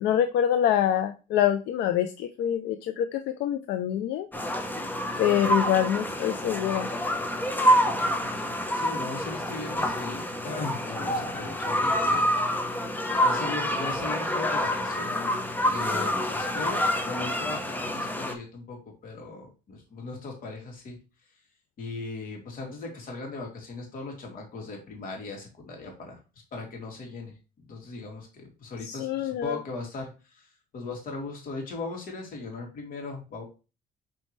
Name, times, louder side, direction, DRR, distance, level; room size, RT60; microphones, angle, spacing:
voice 1, 0.0-4.3 5.2-6.9 28.8-29.6, left 10 dB, 80° left, 8 dB, 0.6 m, -25 dB
sound 1, 4.3-18.3, equal, 10° left, 1.0 m, -27 dB
voice 2, 8.3-12.5 13.2-15.4 15.7-21.0 21.8-26.2 26.5-27.3 27.7-30.1 30.4-30.5 30.7-33.4, left 3 dB, 55° left, 1 dB, 2.9 m, -38 dB
7.6 x 4.2 x 3.3 m, 0.31 s
cardioid pair, 110°, 17 cm